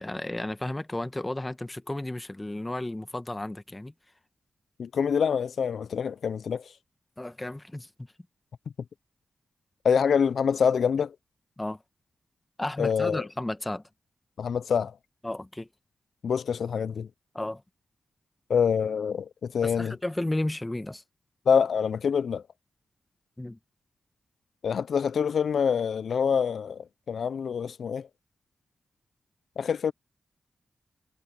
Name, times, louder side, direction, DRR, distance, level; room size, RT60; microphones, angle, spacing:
voice 1, 0.0-3.9 7.2-8.1 11.6-11.8 12.6-13.8 15.2-15.7 17.3-17.6 19.6-21.0 23.4-23.6, left 1 dB, 20° left, 1.2 m, -33 dB
voice 2, 4.8-6.7 9.8-11.1 12.8-13.2 14.4-14.9 16.2-17.1 18.5-19.9 21.5-22.4 24.6-28.1 29.6-29.9, left 7 dB, 80° left, 0.4 m, -26 dB
cardioid pair, 55°, 0 cm